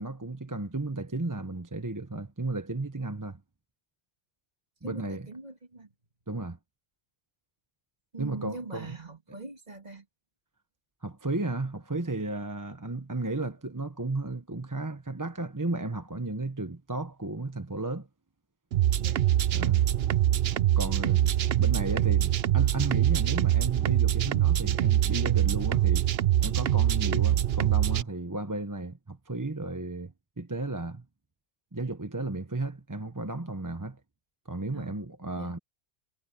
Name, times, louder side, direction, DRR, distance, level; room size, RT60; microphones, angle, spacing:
voice 1, 0.0-3.4 4.8-5.3 6.3-6.6 8.2-9.0 11.0-18.1 19.5-19.8 20.8-21.3 21.6-26.1 26.4-31.0 31.7-34.0 34.5-35.6, right 2 dB, 20° right, 0.9 m, -34 dB
voice 2, 4.8-5.9 8.1-10.0 19.0-19.2 34.7-35.0 35.4-35.5, right 3 dB, 35° right, 2.4 m, -42 dB
sound 1, 18.7-28.0, right 12 dB, 65° right, 0.8 m, -24 dB
omnidirectional pair, 1.2 m